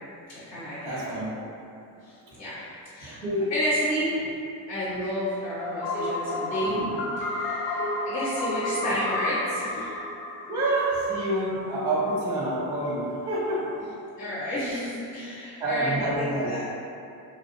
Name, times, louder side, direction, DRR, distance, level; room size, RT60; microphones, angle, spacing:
voice 1, 0.3-1.3 2.0-2.6 2.9-3.2 3.5-4.1 4.7-6.8 7.2-9.9 14.2-16.6, equal, 35° left, -12 dB, 0.8 m, -31 dB
voice 2, 0.8-1.3 3.1-3.5 6.6-7.1 8.6-8.9 9.6-9.7 10.5-13.8 15.6-16.5, right 1 dB, 15° right, -6 dB, 0.6 m, -28 dB
sound 1, 5.6-11.4, left 2 dB, 85° left, 0.6 m, -31 dB
2.5 x 2.0 x 2.6 m, 2.6 s
supercardioid pair, 85°, 47 cm